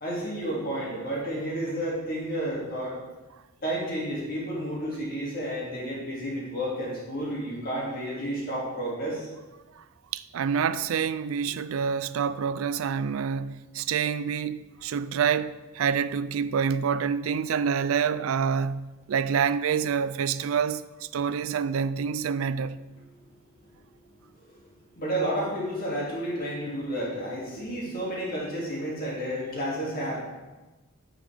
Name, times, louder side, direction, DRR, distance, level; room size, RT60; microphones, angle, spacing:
voice 1, 0.0-3.0 3.6-9.3 24.4-24.6 25.0-30.2, equal, 45° left, 2.4 m, -31 dB
voice 2, 10.1-20.8 21.1-22.8, right 7 dB, 80° right, 0.4 m, -27 dB
9.5 x 7.7 x 3.4 m
head